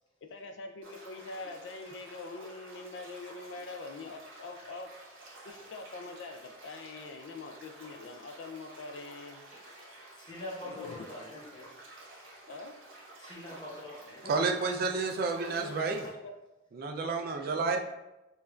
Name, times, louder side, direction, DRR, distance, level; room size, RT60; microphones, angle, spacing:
voice 1, 0.2-4.9 5.4-9.4 10.6-11.1 12.5-12.8 15.4-16.3, left 3 dB, 60° left, 5 dB, 0.3 m, -44 dB
sound 1, 0.8-16.1, right 1 dB, 85° right, 1.3 m, -52 dB
voice 2, 10.1-11.7 13.2-14.5 17.7-17.8, left 1 dB, 25° left, -5 dB, 0.9 m, -44 dB
voice 3, 14.3-16.0 16.7-17.8, right 4 dB, 50° right, 4 dB, 0.3 m, -30 dB
5.4 x 2.5 x 2.3 m, 0.99 s
head